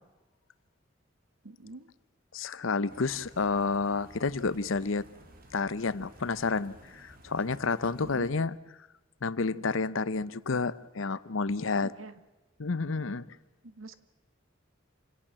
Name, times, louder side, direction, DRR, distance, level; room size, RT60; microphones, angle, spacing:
voice 1, 1.4-1.9 8.0-8.3 11.7-12.1 13.6-14.0, right 2 dB, 85° right, 12 dB, 1.4 m, -45 dB
voice 2, 2.3-5.0 5.5-8.6 9.2-11.9 12.6-13.3, left 4 dB, 75° left, 17 dB, 0.8 m, -30 dB
sound 1, 2.9-8.3, right 1 dB, 45° right, 2.6 m, -54 dB
27.5 x 17.5 x 7.5 m, 1.1 s
head